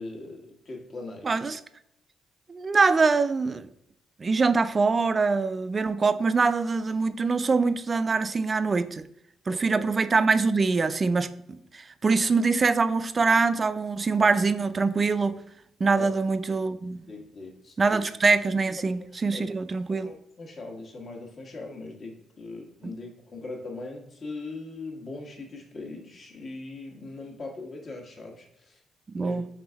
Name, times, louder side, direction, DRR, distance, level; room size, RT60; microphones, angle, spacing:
voice 1, 0.0-1.5 9.5-9.9 15.9-16.1 17.1-18.0 18.8-18.9 19.3-19.5 19.9-28.8 29.2-29.4, left 3 dB, 45° left, 1.3 m, -40 dB
voice 2, 1.2-1.6 2.5-3.7 4.2-9.0 9.5-15.4 15.8-17.0 17.8-20.1 22.8-22.9 29.1-29.5, right 4 dB, 35° right, 0.3 m, -24 dB
4.4 x 3.6 x 3.4 m
cardioid pair, 90°, 0 cm